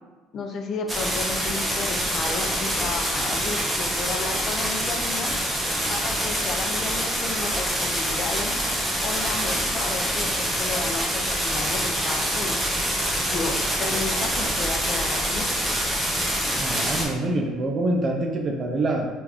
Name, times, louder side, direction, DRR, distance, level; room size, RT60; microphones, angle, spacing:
voice 1, 0.3-5.3 5.9-8.6 9.0-12.6 13.2-15.6, left 3 dB, 50° left, 4 dB, 0.4 m, -33 dB
sound 1, 0.9-17.1, equal, 5° right, 0.9 m, -25 dB
voice 2, 16.6-19.1, right 2 dB, 45° right, 2 dB, 0.5 m, -25 dB
3.7 x 2.4 x 2.9 m, 1.4 s
supercardioid pair, 70°, 0 cm